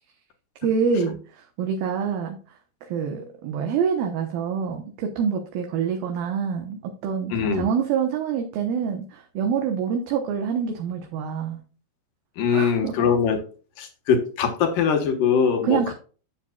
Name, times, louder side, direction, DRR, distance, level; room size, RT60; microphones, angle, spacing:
voice 1, 0.6-11.6 12.5-13.1 15.6-15.9, right 6 dB, 70° right, 4 dB, 2.6 m, -26 dB
voice 2, 7.3-7.7 12.4-13.4 13.8-15.9, left 6 dB, 65° left, 5 dB, 2.7 m, -22 dB
9.6 x 8.0 x 2.3 m, 0.38 s
omnidirectional pair, 4.7 m